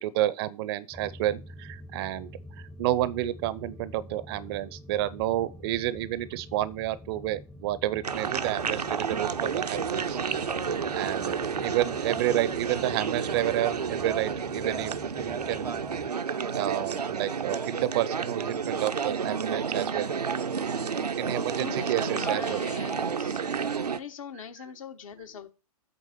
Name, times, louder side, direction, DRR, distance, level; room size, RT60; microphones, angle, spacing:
voice 1, 0.0-2.3 2.6-10.2 10.9-15.8 16.5-20.1 21.2-22.6, right 14 dB, 40° right, 0.6 m, -30 dB
sound 1, 0.9-16.1, left 1 dB, 5° left, 0.7 m, -47 dB
sound 2, 8.0-24.0, right 6 dB, 85° right, 0.6 m, -30 dB
voice 2, 21.3-23.4 24.0-25.5, left 7 dB, 60° left, 1.2 m, -42 dB
8.4 x 3.5 x 6.7 m
figure-of-eight pair, 110°, 20 cm